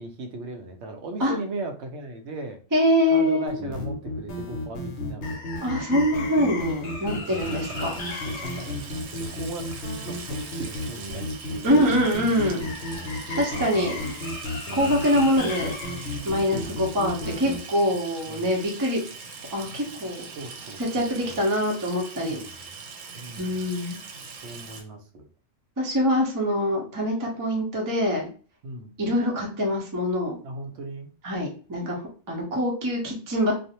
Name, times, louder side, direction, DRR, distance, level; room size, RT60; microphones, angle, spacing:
voice 1, 0.0-2.6 3.1-5.4 7.1-11.7 13.3-13.6 16.5-16.8 18.3-18.5 20.3-21.4 22.2-22.8 23.2-23.6 24.4-25.3 28.6-29.0 30.4-31.1, right 2 dB, 65° right, 5 dB, 0.8 m, -38 dB
voice 2, 2.7-3.7 5.6-8.0 11.6-12.7 13.4-14.1 14.7-15.7 16.2-19.0 19.5-20.2 20.8-22.4 23.4-24.0 25.8-28.3 29.0-30.4 31.2-32.0 32.3-33.5, equal, 20° right, -2 dB, 0.5 m, -24 dB
sound 1, 3.5-17.6, left 2 dB, 70° left, 0.9 m, -33 dB
Water tap faucet / Sink (filling or washing), 6.9-24.8, right 4 dB, 90° right, 1.0 m, -42 dB
2.5 x 2.0 x 2.7 m, 0.38 s
omnidirectional pair, 1.3 m